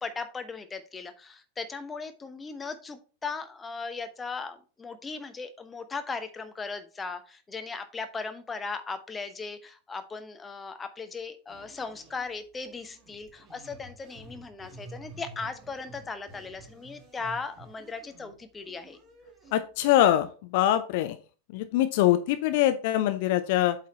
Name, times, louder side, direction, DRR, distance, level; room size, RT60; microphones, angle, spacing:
voice 1, 0.0-19.0, left 4 dB, 15° left, 9 dB, 0.9 m, -38 dB
sound 1, 11.5-12.3 12.7-19.7 20.2-20.3, right 2 dB, 25° right, 2.1 m, -50 dB
voice 2, 19.5-21.2 21.5-23.8, left 13 dB, 50° left, 10 dB, 0.6 m, -23 dB
8.1 x 4.7 x 4.1 m, 0.36 s
figure-of-eight pair, 90°, 0 cm